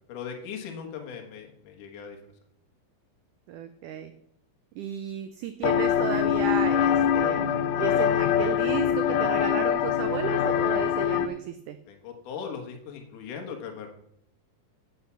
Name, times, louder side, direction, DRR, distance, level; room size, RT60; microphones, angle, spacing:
voice 1, 0.1-2.2 11.9-13.9, left 6 dB, 65° left, 3 dB, 2.8 m, -39 dB
voice 2, 3.5-4.1 4.8-11.8, right 9 dB, 85° right, 10 dB, 1.7 m, -33 dB
sound 1, 5.6-11.3, left 9 dB, 80° left, 2.0 m, -24 dB
8.1 x 8.0 x 7.0 m, 0.73 s
omnidirectional pair, 4.3 m